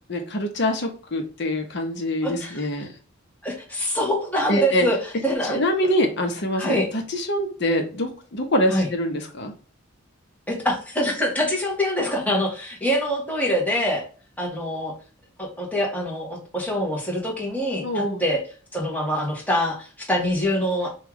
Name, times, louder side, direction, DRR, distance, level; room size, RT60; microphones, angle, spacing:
voice 1, 0.1-2.9 4.5-4.9 5.4-9.5 17.8-18.2, equal, 55° left, 4 dB, 0.9 m, -25 dB
voice 2, 2.2-2.6 3.4-5.0 5.2-5.6 6.6-6.8 8.7-8.9 10.5-14.1 14.4-14.9 15.4-18.4 18.7-20.9, equal, 10° left, -2 dB, 1.1 m, -24 dB
5.3 x 2.4 x 3.0 m, 0.38 s
head